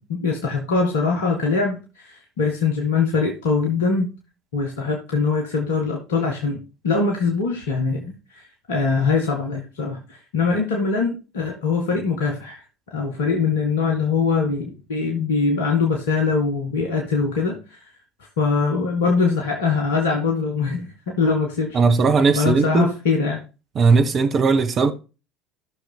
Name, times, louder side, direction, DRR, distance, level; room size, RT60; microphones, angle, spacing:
voice 1, 0.0-4.1 4.5-12.6 12.9-17.9 18.4-21.8 22.4-23.4, left 4 dB, 75° left, 1.8 m, -22 dB
voice 2, 21.7-22.9 23.7-24.9, right 4 dB, 40° right, 1.4 m, -17 dB
15.5 x 6.6 x 2.2 m
figure-of-eight pair, 65°, 0 cm